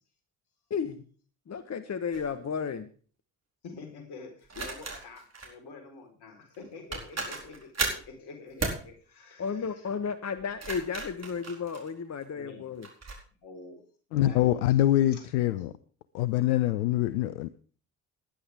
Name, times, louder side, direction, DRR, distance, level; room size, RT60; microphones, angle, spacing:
voice 1, 1.5-2.9 9.4-12.9, left 6 dB, 35° left, 11 dB, 1.2 m, -33 dB
sound 1, 2.1-2.3 4.5-5.5 6.5-6.6 6.9-8.1 8.6-8.9 10.4-12.2 12.8-13.2, right 3 dB, 35° right, 4.4 m, -35 dB
voice 2, 3.6-9.9 12.3-12.6 13.3-13.8 14.1-14.6 15.1-15.2, left 4 dB, 60° left, 4 dB, 4.4 m, -47 dB
voice 3, 14.1-15.7 16.1-17.5, left 14 dB, 75° left, 15 dB, 0.7 m, -24 dB
19.5 x 10.0 x 3.6 m, 0.41 s
figure-of-eight pair, 45°, 45 cm